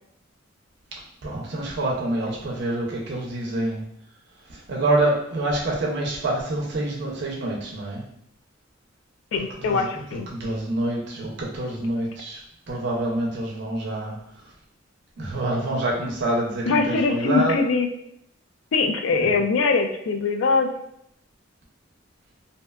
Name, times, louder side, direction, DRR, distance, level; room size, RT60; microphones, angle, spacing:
voice 1, 1.2-3.8 4.5-8.0 9.6-9.9 10.3-12.4 12.7-14.2 15.2-17.6 19.2-19.3, right 1 dB, 55° right, -2 dB, 0.5 m, -26 dB
voice 2, 9.3-10.3 16.7-17.9 18.7-20.7, left 4 dB, 70° left, 5 dB, 0.3 m, -22 dB
2.6 x 2.2 x 2.2 m, 0.73 s
head